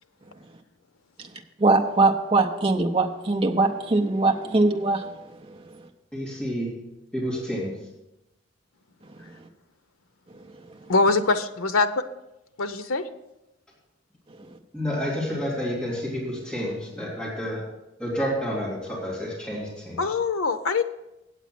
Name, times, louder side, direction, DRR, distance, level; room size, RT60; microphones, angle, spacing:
voice 1, 1.6-5.0, right 3 dB, 30° right, 3 dB, 0.6 m, -21 dB
voice 2, 6.1-6.7 7.1-7.7 14.7-17.6 18.0-20.0, equal, 5° left, -7 dB, 2.4 m, -29 dB
voice 3, 10.9-12.0 12.6-13.0 20.0-20.8, left 3 dB, 90° left, 10 dB, 0.6 m, -23 dB
8.3 x 8.2 x 5.9 m, 0.92 s
head